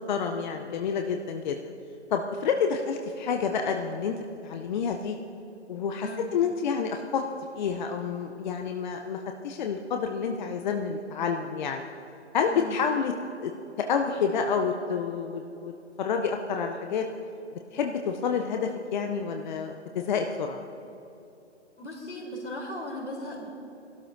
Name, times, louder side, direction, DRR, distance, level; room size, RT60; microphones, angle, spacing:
voice 1, 0.1-1.6 2.1-5.1 5.7-7.2 7.6-11.9 12.3-13.1 13.4-13.5 13.9-15.7 16.0-17.1 17.7-20.6, left 6 dB, 40° left, 4 dB, 0.6 m, -29 dB
voice 2, 21.8-23.5, equal, 75° left, -1 dB, 3.5 m, -37 dB
22.5 x 12.5 x 2.6 m, 2.8 s
figure-of-eight pair, 135°, 35 cm